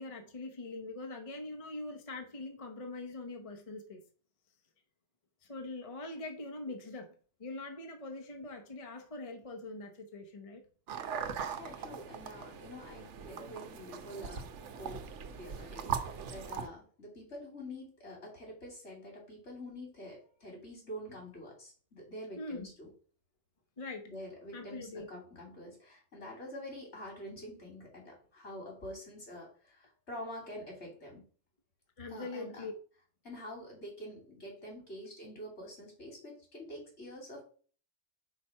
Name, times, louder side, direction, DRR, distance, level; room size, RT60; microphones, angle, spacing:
voice 1, 0.0-4.0 5.4-7.1 7.4-10.6 22.4-22.7 23.8-24.1 24.5-25.1 32.0-32.7, left 2 dB, 35° left, 0.8 m, -43 dB
sound 1, 10.9-16.7, right 7 dB, 85° right, 1.0 m, -40 dB
voice 2, 11.6-14.5 14.7-22.9 24.1-31.3 32.1-32.7 33.2-37.4, left 1 dB, 75° left, 3.1 m, -46 dB
4.8 x 4.2 x 5.5 m
omnidirectional pair, 1.2 m